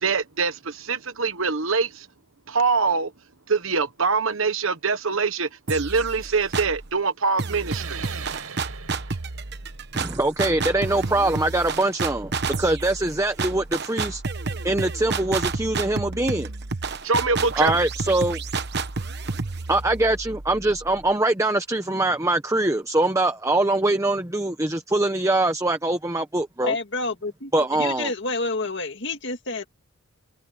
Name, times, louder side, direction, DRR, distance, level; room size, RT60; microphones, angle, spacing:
voice 1, 0.0-2.1 2.5-3.1 3.5-8.1 17.0-17.7, right 4 dB, 65° right, 1.3 m, -24 dB
sound 1, 5.7-6.9 7.4-21.1, right 4 dB, 50° right, 1.1 m, -30 dB
sound 2, 7.6-12.7, right 7 dB, 85° right, 7.3 m, -42 dB
voice 2, 9.9-12.3 12.6-14.2 14.6-16.5 17.6-18.4 19.7-26.7 27.5-28.1, right 2 dB, 15° right, 0.9 m, -23 dB
voice 3, 26.6-27.5 27.8-29.6, left 3 dB, 55° left, 2.2 m, -28 dB
head